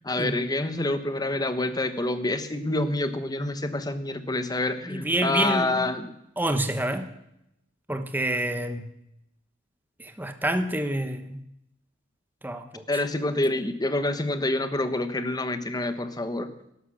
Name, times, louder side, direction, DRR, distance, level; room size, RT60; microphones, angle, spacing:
voice 1, 0.0-6.1 12.9-16.5, left 2 dB, 20° left, 9 dB, 1.1 m, -27 dB
voice 2, 4.9-5.9 6.4-7.1 7.9-8.9 10.0-11.4 12.4-13.0, right 1 dB, 10° right, 8 dB, 1.0 m, -28 dB
12.5 x 11.5 x 6.3 m, 0.80 s
head